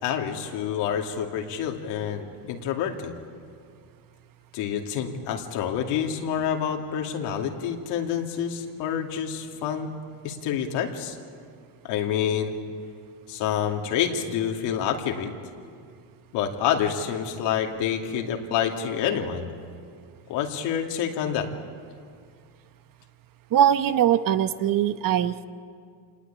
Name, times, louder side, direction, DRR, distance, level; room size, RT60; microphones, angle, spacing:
voice 1, 0.0-3.1 4.5-9.9 10.2-11.2 11.8-12.6 13.3-15.3 16.3-19.5 20.3-21.5, left 8 dB, 75° left, 3 dB, 2.6 m, -28 dB
voice 2, 23.5-25.4, right 10 dB, 50° right, 12 dB, 1.1 m, -21 dB
26.5 x 20.0 x 8.6 m, 2.2 s
cardioid pair, 110°, 42 cm